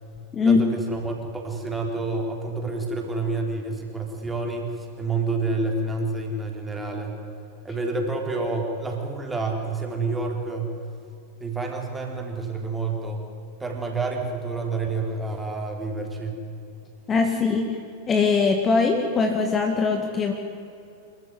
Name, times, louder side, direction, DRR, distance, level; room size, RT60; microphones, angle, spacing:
voice 1, 0.4-7.2 7.6-10.8 11.4-13.3 13.6-16.4, right 3 dB, 10° right, 1 dB, 4.2 m, -28 dB
voice 2, 17.1-17.7 18.1-20.3, left 4 dB, 20° left, 3 dB, 2.1 m, -21 dB
25.5 x 14.5 x 9.9 m, 2.7 s
figure-of-eight pair, 90°, 0 cm